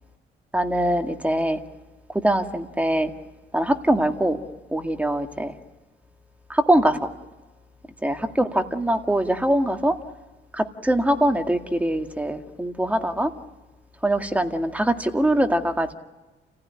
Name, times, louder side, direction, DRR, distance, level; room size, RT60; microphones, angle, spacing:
voice 1, 0.5-1.6 2.1-3.1 3.5-4.4 4.7-5.5 6.5-7.1 8.0-10.0 10.5-13.3 14.0-15.9, right 1 dB, 5° right, 5 dB, 2.0 m, -22 dB
29.5 x 16.0 x 9.8 m, 1.2 s
cardioid pair, 90°, 20 cm